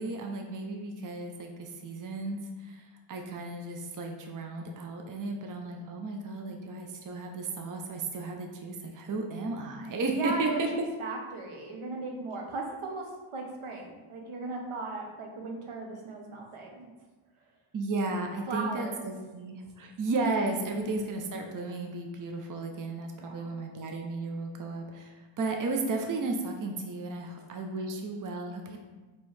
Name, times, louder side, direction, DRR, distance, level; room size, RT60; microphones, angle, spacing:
voice 1, 0.0-2.8 3.1-10.7 17.7-28.8, right 3 dB, 40° right, 3 dB, 0.5 m, -34 dB
voice 2, 10.2-16.9 18.5-19.0 20.7-21.0 23.2-23.6, right 2 dB, 85° right, 1 dB, 0.9 m, -37 dB
4.4 x 3.0 x 3.2 m, 1.2 s
wide cardioid pair, 100°, 48 cm